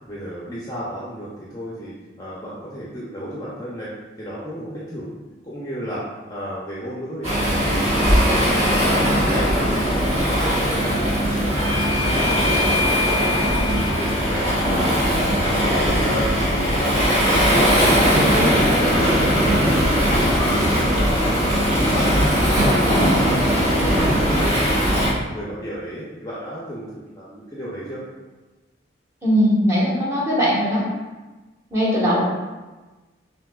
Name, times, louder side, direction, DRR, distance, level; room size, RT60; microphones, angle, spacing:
voice 1, 0.0-3.9 4.2-5.1 5.4-6.0 6.3-7.3 7.6-8.1 8.5-13.4 13.7-14.4 14.9-15.3 15.6-16.3 16.6-23.3 23.6-28.0, equal, 20° left, -7 dB, 0.6 m, -33 dB
Waves surf, 7.2-25.1, equal, 35° right, 1.3 m, -19 dB
Bell / Doorbell, 11.6-16.7, left 3 dB, 80° right, 0.7 m, -29 dB
voice 2, 29.2-30.8 31.7-32.2, equal, 15° right, -8 dB, 1.3 m, -19 dB
6.0 x 2.8 x 2.3 m, 1.2 s
head